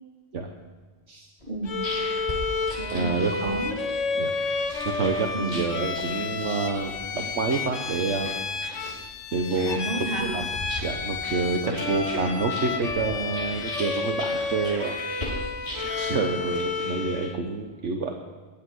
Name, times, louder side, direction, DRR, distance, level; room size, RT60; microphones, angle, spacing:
sound 1, 1.4-17.5, left 1 dB, 35° left, 6.3 m, -39 dB
voice 1, 1.5-1.8 2.8-3.1 3.4-3.8 5.3-5.6 9.6-10.3 11.6-11.8, right 2 dB, 45° right, 0 dB, 2.8 m, -31 dB
Bowed string instrument, 1.7-17.4, left 4 dB, 80° left, 1.6 m, -31 dB
voice 2, 2.9-3.5 4.2-4.3 4.8-8.4 9.3-9.8 10.2-10.5 10.8-15.0 15.7-18.1, right 4 dB, 70° right, 3 dB, 1.4 m, -28 dB
20.0 x 10.5 x 6.3 m, 1.3 s
omnidirectional pair, 1.2 m